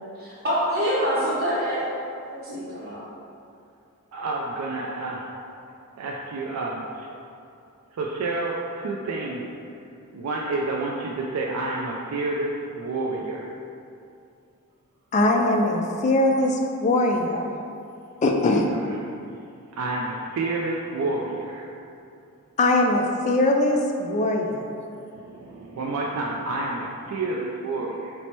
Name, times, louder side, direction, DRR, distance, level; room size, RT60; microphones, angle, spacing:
voice 1, 0.2-1.9 2.2-3.0, equal, 45° right, -12 dB, 0.8 m, -26 dB
voice 2, 4.1-5.3 6.0-7.1 7.9-9.4 10.1-13.5 18.4-18.5 19.7-21.7 25.1-28.1, right 2 dB, 70° right, -2 dB, 0.3 m, -29 dB
voice 3, 15.1-17.5 18.2-18.7 22.6-24.7, left 2 dB, 30° left, 2 dB, 0.3 m, -21 dB
4.3 x 2.1 x 4.2 m, 2.6 s
head